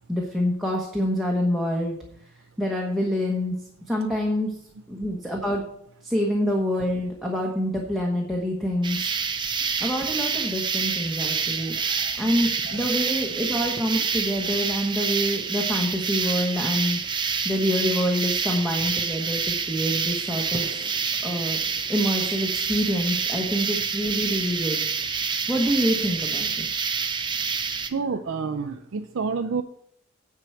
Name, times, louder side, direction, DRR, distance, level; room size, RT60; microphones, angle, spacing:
voice 1, 0.1-2.0 2.6-3.5 3.9-4.6 4.9-5.6 6.0-9.0 9.8-11.8 12.2-17.0 17.4-20.8 21.2-21.6 21.9-24.8 25.5-26.7, equal, ahead, -2 dB, 1.1 m, -26 dB
sound 1, 8.8-27.9, right 5 dB, 20° right, 0.6 m, -27 dB
voice 2, 11.6-12.2 12.7-12.9 27.8-29.6, right 5 dB, 60° right, 7 dB, 0.5 m, -30 dB
9.7 x 4.7 x 7.8 m, 0.73 s
head